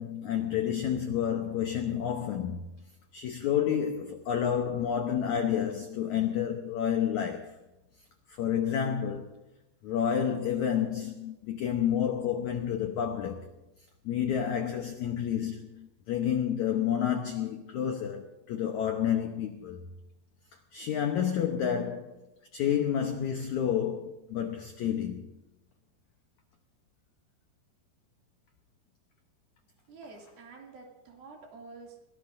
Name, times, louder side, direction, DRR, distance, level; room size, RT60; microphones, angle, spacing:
voice 1, 0.0-2.7 3.1-7.6 8.3-9.3 9.8-13.5 14.0-19.9 20.7-22.2 22.5-25.3, left 9 dB, 85° left, 1.6 m, -30 dB
voice 2, 29.9-32.0, right 3 dB, 60° right, 4.3 m, -48 dB
22.0 x 18.5 x 2.7 m
omnidirectional pair, 4.9 m